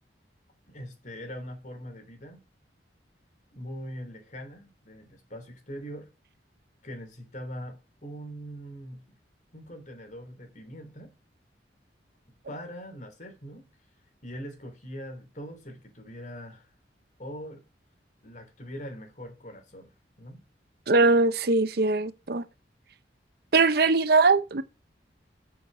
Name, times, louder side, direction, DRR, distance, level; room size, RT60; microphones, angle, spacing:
voice 1, 0.7-2.4 3.5-6.1 6.8-9.0 9.5-11.1 12.5-13.7 14.2-16.7 17.2-17.6 18.2-19.9 20.2-20.4, equal, 45° left, 3.3 m, -42 dB
voice 2, 20.9-22.4 23.5-24.6, right 3 dB, 60° right, 0.7 m, -21 dB
7.1 x 6.4 x 6.4 m
head